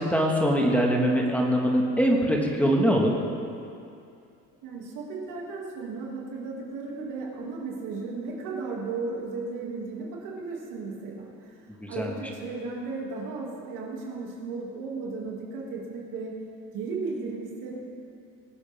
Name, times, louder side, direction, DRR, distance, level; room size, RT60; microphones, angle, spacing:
voice 1, 0.0-3.1 11.8-12.2, equal, 5° left, -1 dB, 1.8 m, -23 dB
voice 2, 4.6-11.6 11.9-16.5 16.7-17.8, right 4 dB, 85° right, -3 dB, 2.7 m, -35 dB
21.5 x 8.1 x 3.6 m, 2.5 s
cardioid pair, 105°, 31 cm